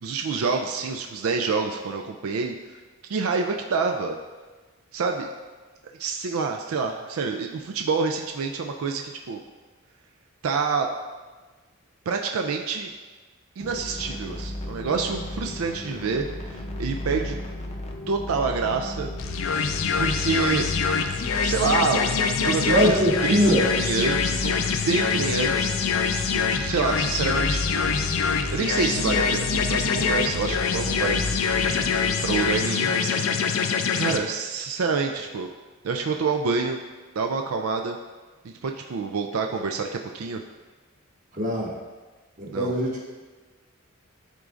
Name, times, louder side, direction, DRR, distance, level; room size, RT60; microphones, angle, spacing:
voice 1, 0.0-2.6 3.1-4.2 4.9-5.3 6.0-9.4 10.4-10.9 12.1-12.9 13.6-17.4 18.1-19.1 20.0-20.7 21.4-24.6 24.8-25.7 26.3-27.9 28.5-31.3 32.2-33.3 33.9-35.5 35.8-36.8 37.2-38.0 38.4-40.4 42.5-42.7, right 5 dB, 90° right, 3 dB, 0.4 m, -27 dB
sound 1, 13.6-32.6, left 1 dB, 30° left, 0.5 m, -34 dB
sound 2, 19.2-34.2, left 6 dB, 75° left, 0.4 m, -25 dB
voice 2, 22.7-23.7 32.6-32.7 41.3-41.8 42.4-43.2, equal, 40° right, -3 dB, 1.2 m, -22 dB
11.0 x 3.7 x 2.5 m, 1.3 s
head